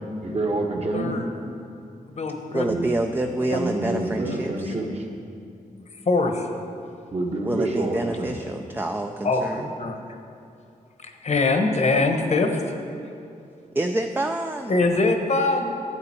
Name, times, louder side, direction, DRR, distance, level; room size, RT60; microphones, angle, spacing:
voice 1, 0.2-1.1 2.6-2.9 3.5-5.0 7.1-8.4, right 2 dB, 50° right, 0 dB, 1.3 m, -27 dB
voice 2, 0.9-1.3 2.1-2.7 3.5-3.6 4.4-4.5 6.1-6.5 9.2-10.2 11.0-12.8 14.7-15.8, left 3 dB, 50° left, 5 dB, 1.0 m, -23 dB
voice 3, 2.5-4.7 7.4-9.7 13.8-14.7, right 2 dB, 15° right, 4 dB, 0.4 m, -27 dB
11.5 x 8.8 x 4.4 m, 2.5 s
wide cardioid pair, 105°, 14 cm